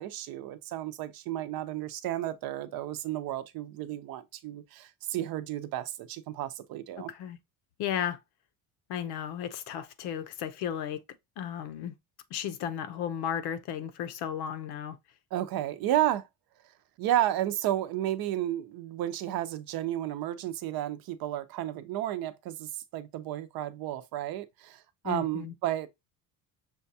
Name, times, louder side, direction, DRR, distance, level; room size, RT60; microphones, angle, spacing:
voice 1, 0.0-7.1 15.3-16.3 17.0-25.9, right 13 dB, 60° right, 0.6 m, -32 dB
voice 2, 7.0-7.4 7.8-8.2 8.9-11.0 11.4-12.0 12.3-15.0 25.0-25.5, left 9 dB, 70° left, 0.7 m, -34 dB
6.2 x 2.3 x 2.7 m
cardioid pair, 130°, 41 cm